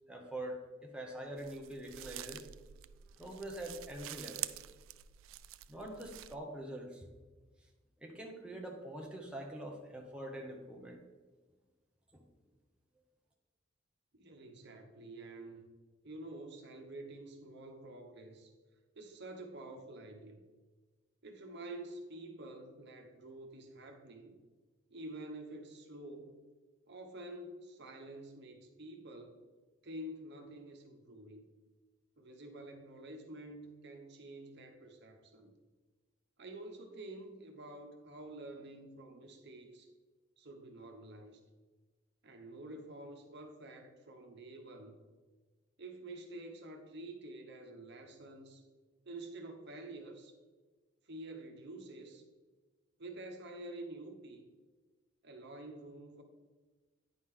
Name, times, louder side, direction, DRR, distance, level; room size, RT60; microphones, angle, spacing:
voice 1, 0.1-2.5 3.2-4.5 5.7-7.1 8.0-11.0 12.1-12.2, right 1 dB, 5° right, 0 dB, 0.8 m, -44 dB
sound 1, 1.4-6.4, right 13 dB, 85° right, 0.3 m, -47 dB
voice 2, 14.1-15.8 16.0-18.5 19.0-20.4 21.2-24.4 24.9-26.4 26.9-29.4 29.8-31.5 32.2-35.5 36.4-39.9 40.4-41.4 42.2-45.0 45.8-48.6 49.0-50.3 51.0-52.2 53.0-54.4 55.2-56.2, right 1 dB, 60° right, 4 dB, 1.0 m, -48 dB
9.6 x 5.0 x 3.7 m, 1.3 s
head